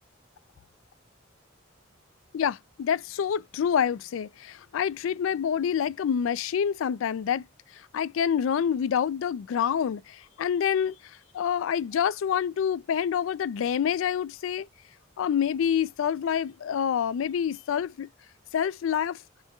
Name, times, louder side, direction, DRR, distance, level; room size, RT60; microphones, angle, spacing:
voice 1, 2.3-7.4 7.9-10.9 11.3-14.7 15.2-18.1 18.5-19.2, left 8 dB, 80° left, 0.3 m, -27 dB
4.3 x 3.5 x 2.3 m
head